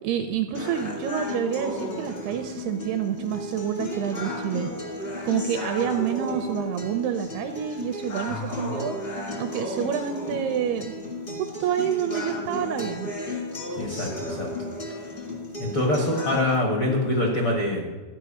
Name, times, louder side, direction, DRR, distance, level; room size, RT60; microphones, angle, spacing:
voice 1, 0.0-4.7 5.2-8.9 9.4-10.9 11.6-13.1, right 9 dB, 80° right, 7 dB, 2.3 m, -28 dB
sound 1, 0.5-16.6, left 2 dB, 55° left, 0.6 m, -34 dB
voice 2, 8.3-8.7 13.8-14.5 15.6-17.9, left 1 dB, 85° left, -1 dB, 1.1 m, -25 dB
13.5 x 5.3 x 8.5 m, 1.3 s
omnidirectional pair, 5.1 m